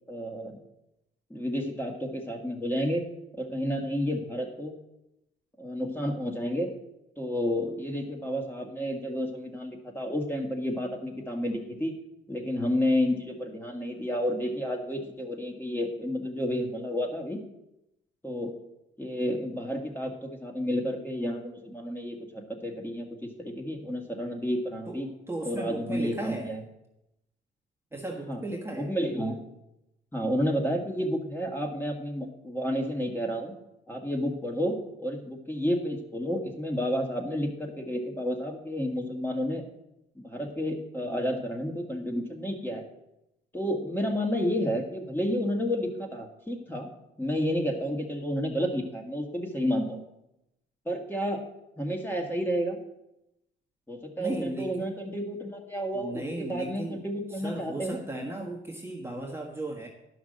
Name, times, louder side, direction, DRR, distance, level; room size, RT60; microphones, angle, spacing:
voice 1, 0.1-0.6 1.3-3.0 3.4-4.8 5.6-6.7 7.2-11.9 12.3-17.4 18.2-18.5 19.0-25.1 25.4-26.6 28.3-28.4 28.7-29.4 30.1-33.5 33.9-39.6 40.2-42.8 43.5-46.9 47.2-50.0 50.9-51.4 51.8-52.8 53.9-58.0, equal, 10° left, 2 dB, 1.9 m, -31 dB
voice 2, 25.3-26.5 27.9-28.9 54.2-54.9 55.9-57.0 57.4-59.9, right 2 dB, 10° right, -1 dB, 1.4 m, -35 dB
11.0 x 6.0 x 6.5 m, 0.88 s
cardioid pair, 90°, 20 cm